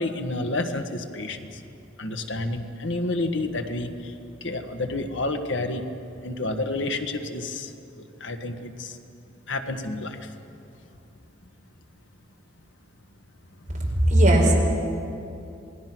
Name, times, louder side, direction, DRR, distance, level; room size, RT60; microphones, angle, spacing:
voice 1, 0.0-1.6 2.0-4.1 4.4-5.8 6.2-9.0 9.5-10.3, left 2 dB, 75° left, 6 dB, 1.5 m, -30 dB
voice 2, 13.9-14.5, right 1 dB, 40° right, -2 dB, 4.9 m, -17 dB
27.5 x 20.5 x 6.1 m, 2.7 s
head